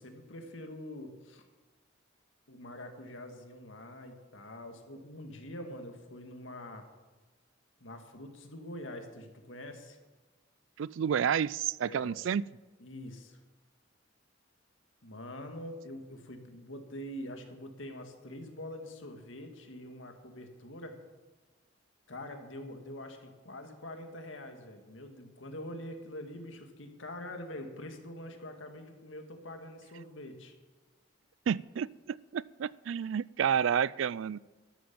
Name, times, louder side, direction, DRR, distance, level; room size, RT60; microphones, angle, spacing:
voice 1, 0.0-1.4 2.5-6.9 7.8-10.0 11.8-12.1 12.8-13.4 15.0-21.0 22.1-30.5, left 1 dB, 75° left, 5 dB, 2.1 m, -45 dB
voice 2, 10.8-12.4 31.5-34.4, right 8 dB, 75° right, 22 dB, 0.3 m, -30 dB
13.0 x 12.0 x 7.0 m, 1.3 s
head